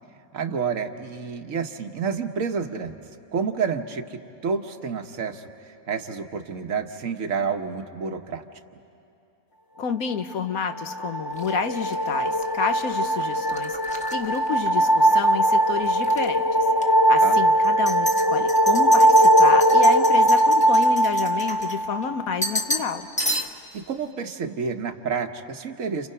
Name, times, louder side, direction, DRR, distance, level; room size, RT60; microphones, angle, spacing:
voice 1, 0.3-3.0 3.3-8.4 17.2-17.4 23.7-26.1, right 6 dB, 70° right, 7 dB, 1.4 m, -29 dB
voice 2, 9.8-16.4 16.8-23.1, left 6 dB, 90° left, 8 dB, 1.5 m, -29 dB
sound 1, 10.6-22.1, right 1 dB, 30° left, 0.4 m, -20 dB
sound 2, 11.4-15.3 15.6-16.3 16.8-16.9 17.6-22.0 22.4-22.9 23.2-23.8, left 1 dB, 5° left, 1.1 m, -32 dB
30.0 x 29.5 x 5.6 m, 2.7 s
omnidirectional pair, 1.5 m